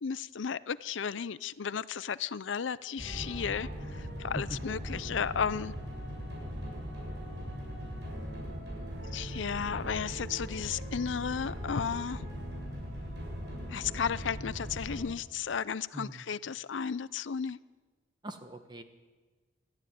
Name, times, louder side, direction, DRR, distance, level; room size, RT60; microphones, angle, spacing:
voice 1, 0.0-5.7 9.1-12.3 13.7-17.6, left 6 dB, 85° left, 18 dB, 0.5 m, -34 dB
sound 1, 3.0-15.0, equal, 65° right, 7.5 m, -39 dB
voice 2, 15.9-16.2 18.2-18.8, right 1 dB, 25° right, 8 dB, 1.4 m, -41 dB
21.0 x 13.5 x 9.2 m, 1.4 s
head